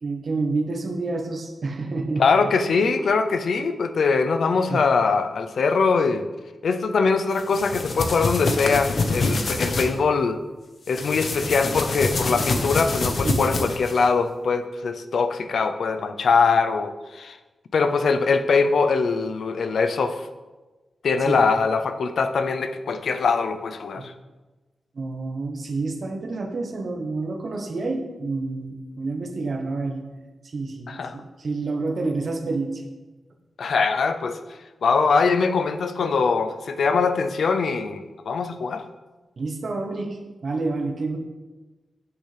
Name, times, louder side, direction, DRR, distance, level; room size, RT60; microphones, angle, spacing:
voice 1, 0.0-2.2 4.7-4.8 13.2-13.4 21.2-21.4 23.9-24.1 24.9-30.1 30.4-32.8 39.4-41.2, right 3 dB, 55° right, 3 dB, 1.1 m, -28 dB
voice 2, 2.2-6.3 6.6-10.4 10.9-17.4 17.7-20.3 21.0-24.1 30.9-31.2 33.6-34.4 34.8-38.9, left 4 dB, 75° left, 9 dB, 0.5 m, -22 dB
sound 1, 7.4-9.9 10.9-14.0, left 3 dB, 60° left, 0.9 m, -26 dB
8.0 x 6.7 x 3.3 m, 1.2 s
wide cardioid pair, 110°, 0 cm